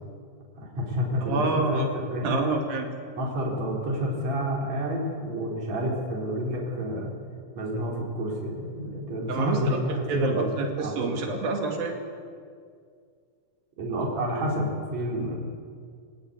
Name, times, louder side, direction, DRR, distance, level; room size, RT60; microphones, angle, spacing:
voice 1, 0.6-2.4 3.1-7.1 7.6-11.2 13.8-15.4, equal, 50° right, -2 dB, 5.3 m, -29 dB
voice 2, 1.2-1.9 2.2-2.9 9.3-9.8 10.1-12.0, right 3 dB, 85° right, 3 dB, 4.2 m, -27 dB
26.0 x 17.5 x 9.8 m, 2.2 s
omnidirectional pair, 4.0 m